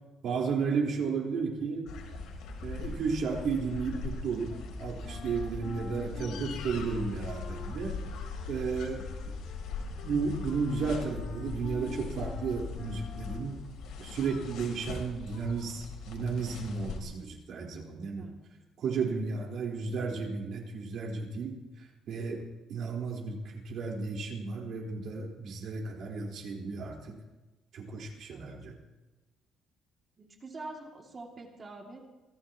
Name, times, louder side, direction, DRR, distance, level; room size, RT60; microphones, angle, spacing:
voice 1, 0.2-1.9 2.6-8.0 8.5-9.4 10.0-13.6 14.0-18.3 18.8-27.1 27.7-28.7, right 5 dB, 65° right, -1 dB, 4.3 m, -33 dB
sound 1, 1.9-17.0, left 4 dB, 80° left, 3.6 m, -40 dB
Wind instrument woodwind instrument, 5.0-13.6, left 6 dB, 50° left, 1.5 m, -47 dB
voice 2, 30.2-32.0, right 2 dB, 30° right, 1 dB, 2.6 m, -45 dB
25.5 x 17.0 x 3.0 m, 1.1 s
cardioid pair, 125°, 0 cm